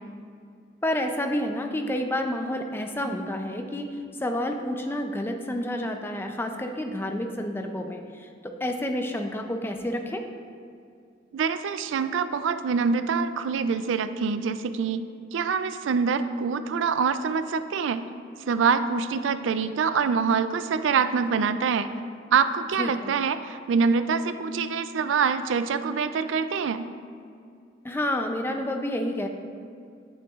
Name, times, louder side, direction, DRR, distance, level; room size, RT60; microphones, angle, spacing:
voice 1, 0.8-10.2 22.8-23.1 27.8-29.3, left 1 dB, 10° left, 4 dB, 0.4 m, -29 dB
voice 2, 11.3-18.1 18.5-21.9 22.3-26.9, right 5 dB, 85° right, 11 dB, 0.4 m, -25 dB
8.9 x 8.6 x 2.4 m, 2.4 s
head